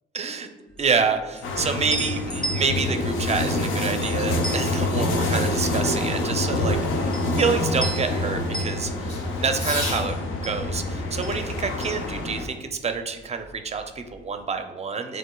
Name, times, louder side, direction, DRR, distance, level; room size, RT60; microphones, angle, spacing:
voice 1, 0.1-0.5 0.8-6.8 7.3-15.2, right 5 dB, 35° right, 7 dB, 0.4 m, -27 dB
sound 1, 0.7-12.9 13.2-14.3, right 2 dB, 5° left, 0.7 m, -37 dB
sound 2, 1.4-12.5, left 2 dB, 85° left, 0.7 m, -26 dB
Fireworks, 3.0-10.1 11.3-12.9, left 1 dB, 40° left, 1.5 m, -40 dB
6.7 x 3.4 x 2.2 m, 1.1 s
cardioid pair, 90°, 20 cm